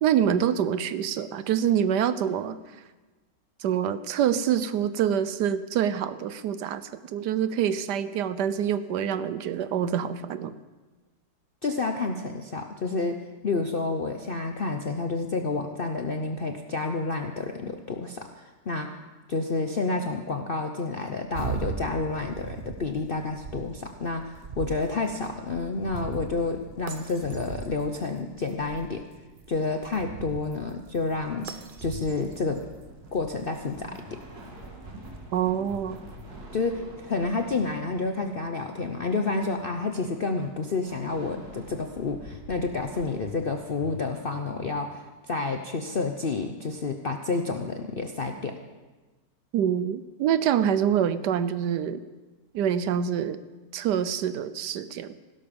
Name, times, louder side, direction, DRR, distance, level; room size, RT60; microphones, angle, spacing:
voice 1, 0.0-2.6 3.6-10.5 35.3-36.1 49.5-52.0 52.5-53.4 53.7-55.2, right 9 dB, 75° right, 14 dB, 1.2 m, -26 dB
voice 2, 11.6-19.0 19.3-29.0 29.5-31.5 31.8-32.7 33.1-34.2 36.5-48.5, left 3 dB, 55° left, 5 dB, 0.6 m, -29 dB
sound 1, 21.3-36.4, right 5 dB, 40° right, 0.7 m, -41 dB
sound 2, 32.0-44.7, left 1 dB, 55° right, 2.9 m, -46 dB
16.5 x 12.5 x 5.3 m, 1.2 s
omnidirectional pair, 1.9 m